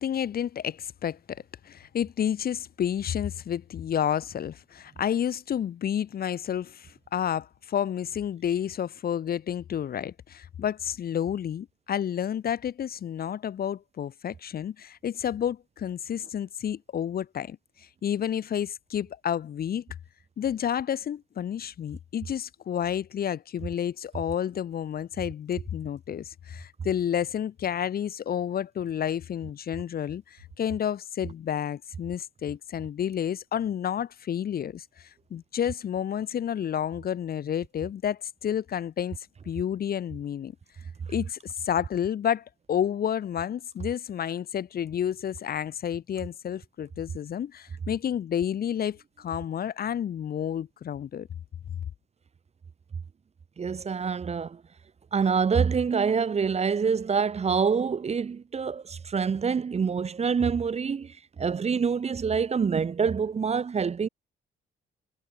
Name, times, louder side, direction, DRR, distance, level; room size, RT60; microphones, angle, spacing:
voice 1, 0.0-19.8 20.4-40.5 41.1-51.3 51.7-51.8, left 9 dB, 50° left, 0.7 m, -30 dB
voice 2, 53.6-54.6 55.1-64.1, right 6 dB, 30° right, 0.8 m, -26 dB
cardioid pair, 90°, 20 cm